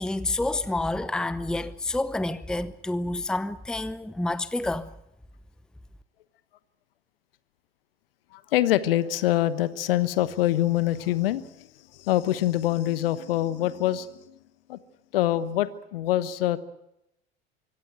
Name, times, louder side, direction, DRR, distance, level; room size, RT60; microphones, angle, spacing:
voice 1, 0.0-4.9, left 2 dB, ahead, 0.8 m, -28 dB
voice 2, 8.3-11.7 11.9-14.3 14.7-14.8 15.1-16.6, left 13 dB, 65° left, 1.2 m, -25 dB
24.5 x 16.5 x 9.0 m
figure-of-eight pair, 75°, 31 cm